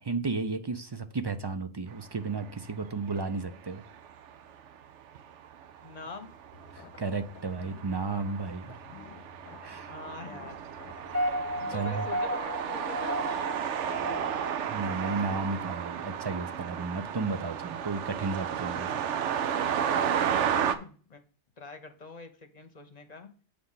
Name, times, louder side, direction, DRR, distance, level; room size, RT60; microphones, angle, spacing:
voice 1, 0.0-3.8 6.7-8.8 9.6-10.0 11.1-11.4 11.7-12.0 14.7-19.0, right 4 dB, 40° right, 9 dB, 0.3 m, -33 dB
sound 1, 2.4-2.7 3.3-4.3 4.7-4.8 5.2-20.8, right 8 dB, 90° right, 1.0 m, -33 dB
voice 2, 5.8-6.3 9.9-10.5 11.7-14.9 20.4-21.2 21.6-23.3, left 3 dB, 40° left, 7 dB, 1.0 m, -45 dB
sound 2, 6.5-11.8, left 8 dB, 80° left, 0.9 m, -52 dB
sound 3, 10.9-15.8, equal, 15° right, 0.9 m, -35 dB
7.9 x 3.5 x 5.6 m, 0.41 s
omnidirectional pair, 1.2 m